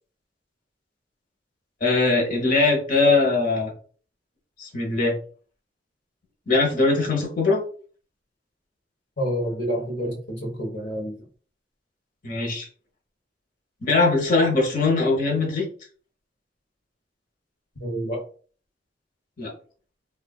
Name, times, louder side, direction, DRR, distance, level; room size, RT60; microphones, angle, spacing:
voice 1, 1.8-3.7 4.6-5.1 6.5-7.6 12.2-12.7 13.8-15.7 19.4-19.5, left 3 dB, 50° left, 1.0 m, -21 dB
voice 2, 9.2-11.2 17.8-18.3, equal, 75° left, 0.9 m, -28 dB
3.5 x 2.3 x 2.2 m
head